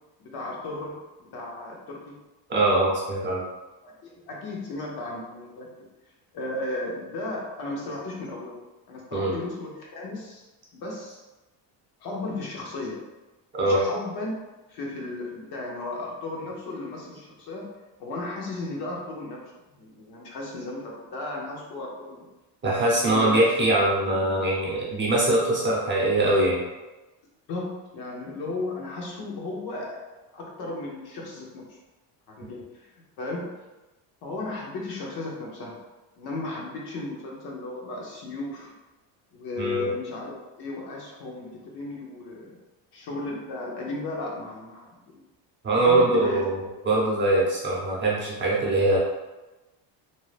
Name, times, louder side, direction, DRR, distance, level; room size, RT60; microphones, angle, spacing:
voice 1, 0.2-1.0 1.3-2.1 3.8-5.7 6.3-8.6 8.9-10.4 10.7-11.2 12.0-13.0 13.6-14.3 14.7-17.7 18.0-19.4 19.7-22.3 22.9-23.5 27.5-30.0 30.3-31.8 32.3-32.9 33.2-33.5 34.2-35.8 36.2-38.7 39.3-42.6 42.9-45.0 45.7-46.4, left 2 dB, 55° left, -2 dB, 0.9 m, -35 dB
voice 2, 2.5-3.4 9.1-9.3 13.6-13.8 22.6-26.6 39.6-39.9 45.6-49.0, right 2 dB, 25° right, -5 dB, 0.6 m, -22 dB
2.7 x 2.1 x 3.2 m, 1.1 s
cardioid pair, 140°, 44 cm